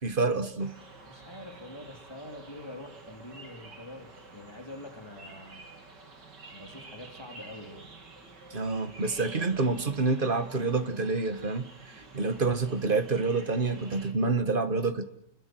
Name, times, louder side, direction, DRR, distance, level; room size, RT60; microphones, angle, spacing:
voice 1, 0.0-0.7 8.5-15.0, right 3 dB, 30° right, 1.7 m, -28 dB
sound 1, 0.6-14.1, right 3 dB, 85° right, 3.6 m, -50 dB
voice 2, 0.8-5.6 6.5-7.9, left 1 dB, 15° left, 3.4 m, -45 dB
29.0 x 21.5 x 7.8 m
omnidirectional pair, 1.8 m